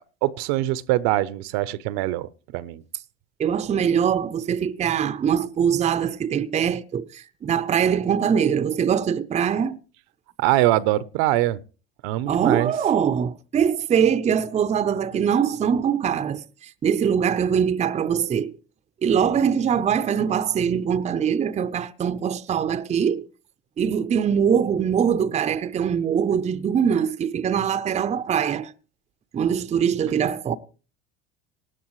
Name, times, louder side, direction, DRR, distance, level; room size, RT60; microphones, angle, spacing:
voice 1, 0.2-2.8 10.4-11.6 12.0-12.7, right 15 dB, 60° right, 0.7 m, -23 dB
voice 2, 3.4-9.8 12.3-16.4 16.8-18.5 19.0-23.3 23.8-28.7 29.3-30.6, right 8 dB, 20° right, 0.6 m, -22 dB
19.0 x 12.0 x 3.1 m
hypercardioid pair, 100°, 31 cm